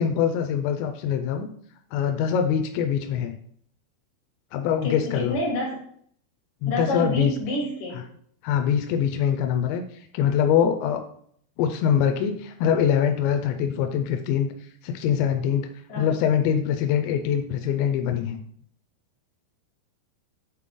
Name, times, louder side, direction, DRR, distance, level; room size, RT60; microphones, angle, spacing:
voice 1, 0.0-1.5 1.9-3.3 4.5-5.4 6.6-7.3 8.4-9.8 10.1-11.0 11.6-14.5 14.8-15.7 16.0-18.4, left 8 dB, 90° left, 6 dB, 2.8 m, -23 dB
voice 2, 4.8-5.8 6.7-8.0 15.9-16.1, left 1 dB, 55° left, -5 dB, 3.6 m, -28 dB
9.0 x 4.0 x 3.7 m, 0.63 s
omnidirectional pair, 4.9 m